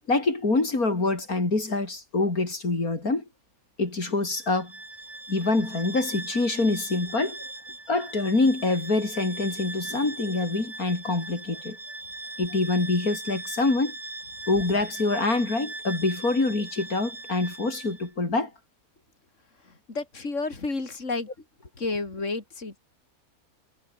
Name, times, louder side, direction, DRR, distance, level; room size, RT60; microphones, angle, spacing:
voice 1, 0.1-3.2 3.8-4.7 5.3-7.4 7.9-11.8 12.4-13.9 14.5-18.5, left 3 dB, 80° left, 5.0 m, -25 dB
Bowed string instrument, 4.2-18.1, right 2 dB, 55° right, 5.3 m, -40 dB
voice 2, 19.9-21.3 21.8-22.8, left 3 dB, 55° left, 4.1 m, -31 dB
omnidirectional pair, 1.5 m